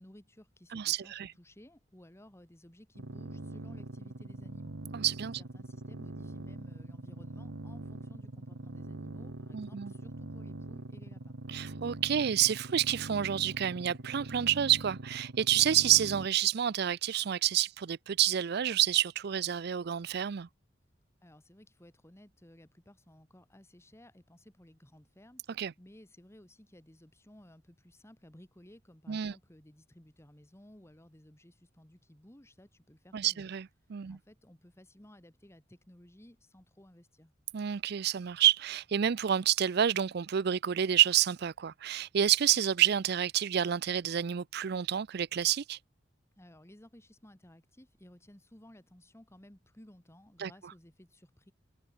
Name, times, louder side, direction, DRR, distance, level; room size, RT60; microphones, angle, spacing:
voice 1, 0.0-4.8 5.4-11.4 21.2-33.5 34.1-37.3 46.4-51.5, left 1 dB, 15° left, 1.7 m, -56 dB
voice 2, 0.7-1.3 4.9-5.4 9.5-9.9 11.5-20.5 25.6-25.7 29.1-29.3 33.1-34.2 37.5-45.8 50.4-50.5, right 10 dB, 60° right, 0.5 m, -29 dB
sound 1, 3.0-16.3, right 2 dB, 90° right, 1.3 m, -43 dB
head